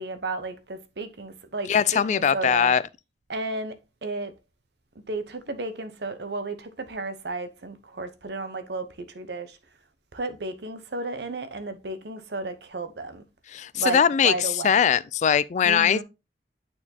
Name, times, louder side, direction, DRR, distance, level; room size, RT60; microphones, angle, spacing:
voice 1, 0.0-2.7 3.3-4.3 5.1-9.6 10.1-13.2 13.7-14.8 15.6-16.0, right 3 dB, 70° right, 0.9 m, -33 dB
voice 2, 1.7-2.8 13.5-16.0, left 8 dB, 40° left, 0.3 m, -21 dB
8.9 x 4.3 x 2.8 m
head